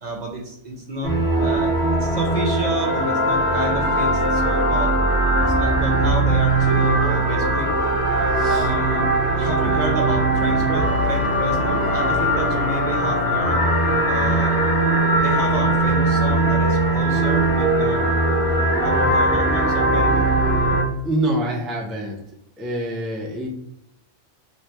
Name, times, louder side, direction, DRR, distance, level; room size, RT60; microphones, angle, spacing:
voice 1, 0.0-4.9 5.4-7.7 8.5-9.1 9.4-13.6 14.1-14.5 15.1-18.2 18.8-20.3, right 1 dB, 45° right, 1 dB, 0.7 m, -30 dB
sound 1, 1.0-20.8, right 1 dB, 75° left, 1.7 m, -20 dB
voice 2, 8.3-8.7 21.0-22.2 22.6-23.5, right 1 dB, ahead, -1 dB, 0.4 m, -26 dB
3.3 x 3.1 x 3.3 m, 0.78 s
omnidirectional pair, 1.1 m